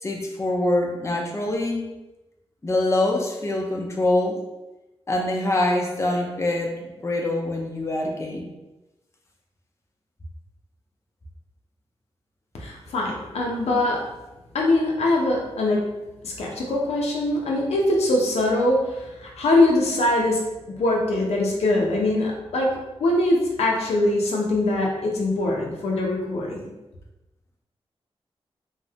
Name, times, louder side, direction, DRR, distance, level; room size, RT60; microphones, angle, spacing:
voice 1, 0.0-1.9 2.6-4.4 5.1-8.5, left 1 dB, 25° left, 1 dB, 0.5 m, -24 dB
voice 2, 12.6-14.2 14.5-20.5 20.8-26.6, left 2 dB, 90° left, -2 dB, 0.6 m, -23 dB
3.1 x 2.0 x 2.7 m, 1.0 s
cardioid pair, 60°, 10 cm